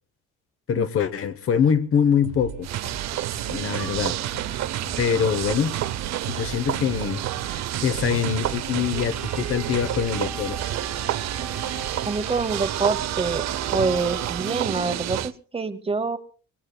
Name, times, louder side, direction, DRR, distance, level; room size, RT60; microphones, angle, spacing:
voice 1, 0.7-2.7 3.5-4.2 5.0-5.8 6.3-10.6, left 7 dB, 45° left, 1.0 m, -24 dB
sound 1, 2.2-10.2, right 9 dB, 80° right, 2.4 m, -35 dB
sound 2, 2.6-15.3, right 13 dB, 60° right, 0.7 m, -29 dB
sound 3, 9.0-14.4, right 2 dB, ahead, 1.4 m, -40 dB
voice 2, 12.1-13.4 13.7-16.2, right 4 dB, 20° right, 1.0 m, -26 dB
24.5 x 19.5 x 2.3 m
cardioid pair, 130°, 30 cm